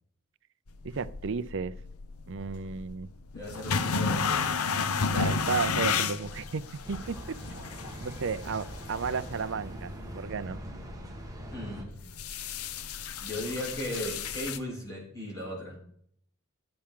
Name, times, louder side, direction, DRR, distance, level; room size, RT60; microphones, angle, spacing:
sound 1, 0.7-14.6, left 5 dB, 85° left, 0.8 m, -33 dB
voice 1, 0.8-1.7 2.3-3.1 5.1-7.4 8.0-10.6, right 5 dB, 60° right, 16 dB, 0.5 m, -33 dB
voice 2, 3.3-4.6 11.5-12.0 13.2-15.8, equal, 15° left, -3 dB, 3.9 m, -37 dB
sound 2, 6.8-11.9, equal, 15° right, 1.6 m, -42 dB
13.0 x 8.8 x 3.7 m, 0.64 s
head